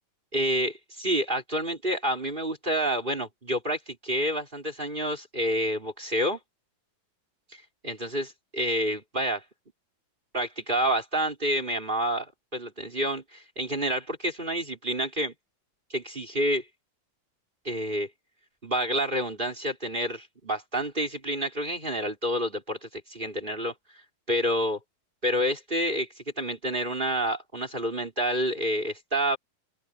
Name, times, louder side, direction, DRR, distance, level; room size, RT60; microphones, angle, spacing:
voice 1, 0.3-6.4 7.8-9.4 10.3-12.3 12.5-15.3 15.9-16.6 17.6-18.1 18.6-23.7 24.3-24.8 25.2-29.4, equal, 15° right, 4.3 m, -28 dB
open air
omnidirectional pair, 4.2 m